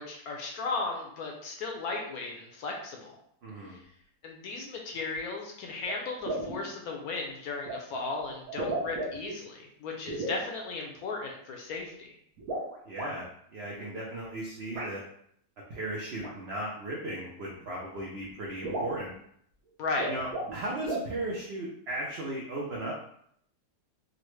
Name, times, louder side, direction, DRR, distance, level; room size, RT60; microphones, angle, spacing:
voice 1, 0.0-3.1 3.7-3.8 4.2-12.2 19.8-20.1, left 3 dB, 70° left, 1 dB, 1.0 m, -36 dB
voice 2, 3.4-3.8 12.8-15.0 15.7-19.1 20.1-22.9, right 1 dB, 85° right, -3 dB, 0.5 m, -36 dB
sound 1, 5.8-6.0 6.2-6.6 7.7-7.8 8.5-9.4 10.1-10.4 12.4-13.1 14.7-14.9 16.2-16.3 17.5-17.6 18.0-18.1 18.3-18.4 18.6-19.0 19.8-20.6 20.8-21.1, right 1 dB, 60° right, 1.1 m, -34 dB
3.8 x 2.1 x 3.1 m, 0.68 s
omnidirectional pair, 1.9 m